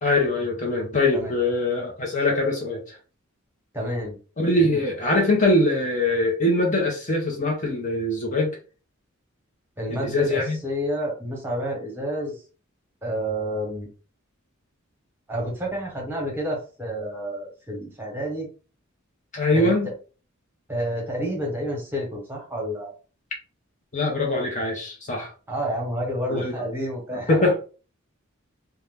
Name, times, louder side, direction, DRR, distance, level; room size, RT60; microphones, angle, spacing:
voice 1, 0.0-3.0 4.4-8.5 9.9-10.6 19.3-19.9 23.9-25.3 26.3-26.8 27.1-27.6, left 2 dB, 40° left, 0 dB, 0.8 m, -23 dB
voice 2, 3.7-4.2 4.6-4.8 9.8-12.4 13.0-13.9 15.3-18.5 19.5-19.9 20.7-22.9 25.5-27.5, equal, 10° right, -1 dB, 1.2 m, -29 dB
2.7 x 2.2 x 3.3 m, 0.36 s
head